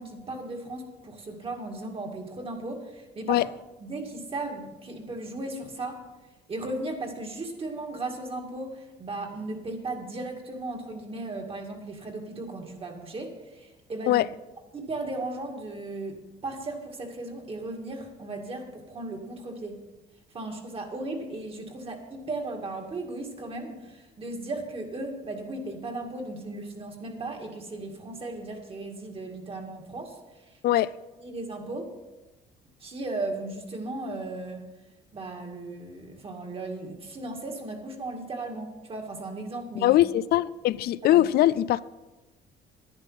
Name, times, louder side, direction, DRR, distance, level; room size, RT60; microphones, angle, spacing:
voice 1, 0.0-3.5 3.8-6.0 6.5-14.3 14.7-19.8 20.3-30.2 30.4-30.6 31.2-31.9 32.8-34.6 35.1-39.9 41.0-41.3, right 2 dB, 35° right, 2.2 m, -36 dB
voice 2, 39.8-41.8, left 14 dB, 65° left, 0.4 m, -21 dB
10.5 x 10.5 x 5.7 m
cardioid pair, 110°, 17 cm